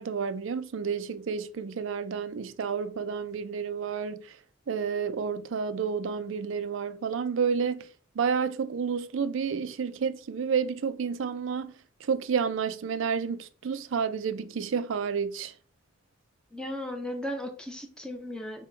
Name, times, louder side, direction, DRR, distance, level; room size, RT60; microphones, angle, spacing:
voice 1, 0.0-4.4 4.7-7.9 8.2-11.7 12.0-15.5, right 6 dB, 70° right, 0.4 m, -30 dB
voice 2, 16.5-18.7, left 1 dB, 5° left, 0.6 m, -36 dB
5.2 x 2.2 x 4.4 m
head